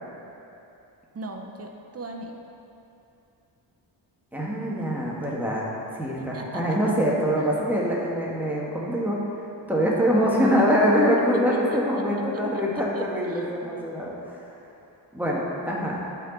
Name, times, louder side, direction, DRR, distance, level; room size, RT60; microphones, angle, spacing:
voice 1, 1.1-2.3 6.2-6.9 7.4-7.5 11.3-13.7, right 2 dB, 35° right, 3 dB, 0.9 m, -39 dB
voice 2, 4.3-5.7 5.9-9.2 9.7-14.4 15.1-16.0, equal, 5° right, -5 dB, 1.6 m, -24 dB
11.5 x 4.5 x 4.1 m, 2.8 s
cardioid pair, 80°, 45 cm